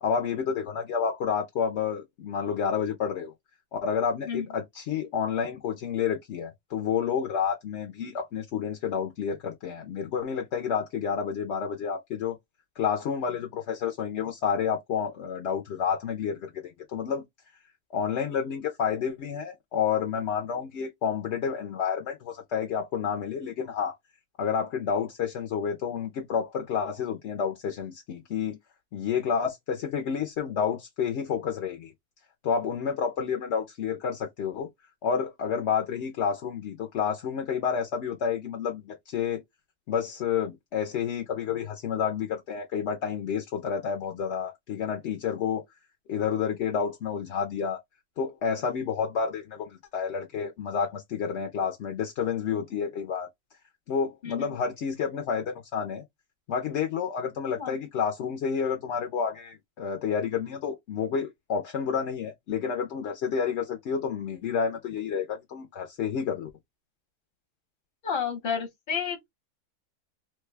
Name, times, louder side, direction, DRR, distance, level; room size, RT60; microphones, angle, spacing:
voice 1, 0.0-3.3 3.7-12.4 12.8-16.5 16.9-17.2 17.9-23.9 24.4-28.6 28.9-31.9 32.4-34.7 35.0-39.4 39.9-45.6 46.1-47.8 48.2-53.3 53.9-56.0 56.5-66.5, left 7 dB, 65° left, 0.7 m, -30 dB
voice 2, 54.2-54.6 57.6-57.8 68.0-69.3, left 7 dB, 40° left, 1.0 m, -31 dB
3.2 x 2.2 x 3.2 m
omnidirectional pair, 1.7 m